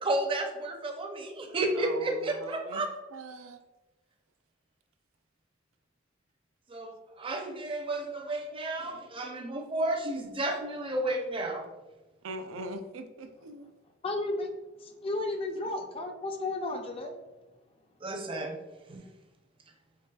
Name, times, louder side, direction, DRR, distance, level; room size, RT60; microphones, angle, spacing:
voice 1, 0.0-2.9 6.7-11.6 18.0-18.5 18.9-19.0, right 2 dB, 25° right, 2 dB, 0.5 m, -32 dB
voice 2, 1.7-2.8 3.1-3.6 12.2-13.7, right 2 dB, 85° right, 7 dB, 0.4 m, -41 dB
voice 3, 14.0-14.5 14.8-17.2, left 2 dB, 30° left, 4 dB, 0.4 m, -33 dB
4.7 x 3.1 x 2.3 m, 1.1 s
head